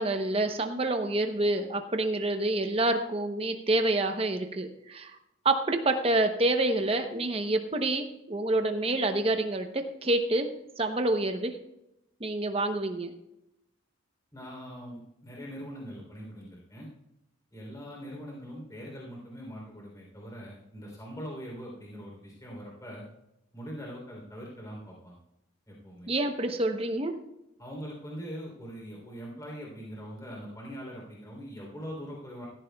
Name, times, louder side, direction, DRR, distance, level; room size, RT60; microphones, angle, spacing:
voice 1, 0.0-5.1 5.4-10.5 10.8-11.6 12.2-13.1 26.1-27.1, right 2 dB, 25° right, 6 dB, 0.8 m, -27 dB
voice 2, 14.3-16.9 17.5-23.0 23.5-25.2 25.7-26.1 27.6-32.5, equal, 15° left, -3 dB, 3.4 m, -42 dB
16.0 x 14.5 x 2.3 m, 0.86 s
head